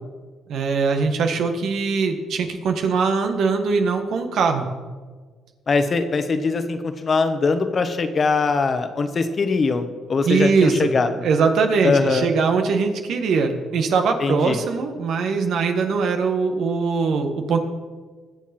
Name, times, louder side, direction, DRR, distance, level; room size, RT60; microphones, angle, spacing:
voice 1, 0.5-4.7 10.2-10.9 11.2-17.6, right 5 dB, 70° right, 5 dB, 1.6 m, -21 dB
voice 2, 5.7-11.2 11.8-12.3 14.2-14.6, left 4 dB, 45° left, 8 dB, 1.3 m, -22 dB
21.5 x 7.1 x 4.4 m, 1.5 s
supercardioid pair, 65°, 0 cm